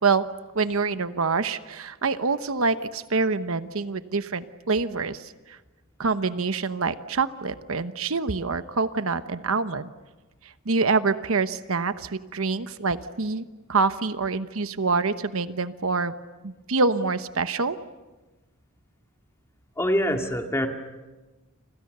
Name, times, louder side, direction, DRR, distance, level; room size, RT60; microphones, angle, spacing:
voice 1, 0.5-5.6 6.0-9.9 10.4-16.1 16.4-17.8, right 4 dB, 70° right, 11 dB, 1.0 m, -26 dB
voice 2, 19.8-20.7, equal, 15° left, 3 dB, 2.2 m, -24 dB
30.0 x 26.5 x 6.8 m, 1.2 s
head